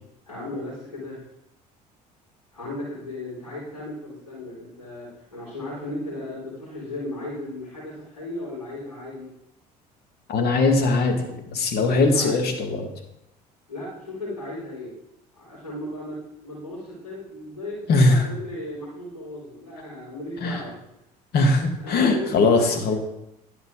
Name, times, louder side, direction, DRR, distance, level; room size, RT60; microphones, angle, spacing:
voice 1, 0.3-1.2 2.5-9.3 11.9-12.4 13.7-14.9 15.3-16.2 16.4-20.7 21.8-23.0, left 1 dB, 85° left, -12 dB, 4.0 m, -35 dB
voice 2, 10.3-11.2 11.5-12.9 17.9-18.3 20.4-20.6 21.3-23.0, left 3 dB, 50° left, 4 dB, 1.9 m, -20 dB
11.0 x 5.8 x 4.8 m, 0.84 s
hypercardioid pair, 60°, 20 cm